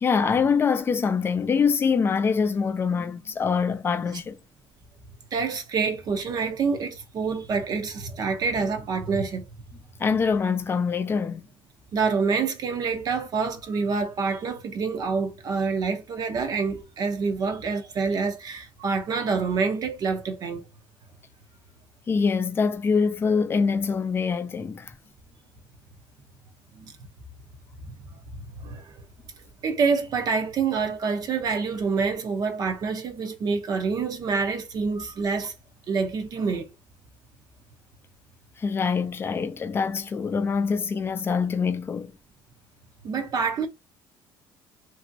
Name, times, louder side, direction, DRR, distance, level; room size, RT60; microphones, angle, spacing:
voice 1, 0.0-4.4 10.0-11.4 22.1-24.9 38.6-42.1, left 5 dB, 25° left, 0.4 m, -24 dB
voice 2, 5.3-9.5 11.9-20.6 26.7-26.9 28.6-28.9 29.6-35.5 35.9-36.7 43.0-43.7, right 5 dB, 40° right, 0.6 m, -27 dB
3.0 x 2.7 x 2.5 m
cardioid pair, 140°, 9 cm